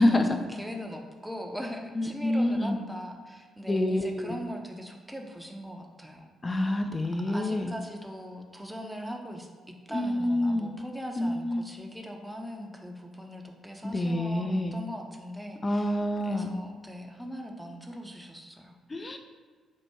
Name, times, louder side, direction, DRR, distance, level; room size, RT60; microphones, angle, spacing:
voice 1, 0.1-6.7 7.3-18.8, equal, 5° right, 2 dB, 0.7 m, -40 dB
voice 2, 2.0-2.8 3.7-4.4 6.4-7.7 9.9-10.7 11.2-11.6 13.8-14.8 15.6-16.5 18.9-19.2, left 1 dB, 30° left, 5 dB, 0.5 m, -27 dB
4.5 x 2.5 x 4.3 m, 1.5 s
hypercardioid pair, 45°, 0 cm